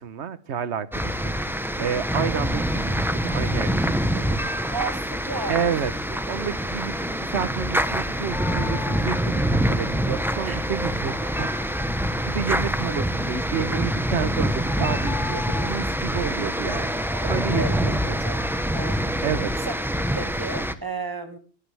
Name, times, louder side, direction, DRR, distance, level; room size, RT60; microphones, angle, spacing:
voice 1, 0.0-4.3 5.5-5.9 6.2-11.5 12.3-18.2 19.2-19.5, right 8 dB, 65° right, 15 dB, 1.2 m, -30 dB
sound 1, 0.9-20.7, equal, ahead, 0.8 m, -25 dB
sound 2, 4.4-17.0, right 1 dB, 45° right, 3.2 m, -46 dB
voice 2, 4.7-5.8 10.5-10.6 11.4-11.5 14.8-15.0 17.1-18.4 18.7-19.0 19.7-19.8 20.1-21.4, right 3 dB, 15° right, 7 dB, 1.9 m, -33 dB
sound 3, 8.3-9.2 13.8-14.0 14.6-15.9, left 7 dB, 70° left, 2.6 m, -36 dB
19.0 x 16.0 x 3.4 m, 0.38 s
omnidirectional pair, 1.3 m